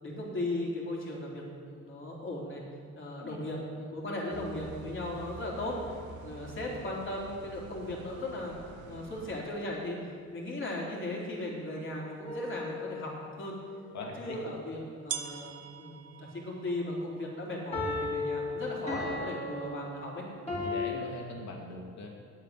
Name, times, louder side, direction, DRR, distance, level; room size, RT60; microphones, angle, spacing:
voice 1, 0.0-2.6 3.0-5.8 6.2-8.5 8.9-10.0 10.3-13.6 14.2-20.2, left 1 dB, 40° left, -3 dB, 3.8 m, -37 dB
sound 1, 4.3-9.4, right 5 dB, 85° right, 1.0 m, -48 dB
sound 2, 12.0-12.1 13.8-13.9 15.1-20.7, right 9 dB, 50° right, 0.8 m, -45 dB
sound 3, 12.3-13.3 17.7-20.9, left 3 dB, 20° left, 3.8 m, -35 dB
voice 2, 13.9-14.4 15.2-15.4 20.5-22.1, left 2 dB, 65° left, 0 dB, 2.5 m, -41 dB
8.5 x 8.3 x 9.3 m, 2.1 s
cardioid pair, 90°, 30 cm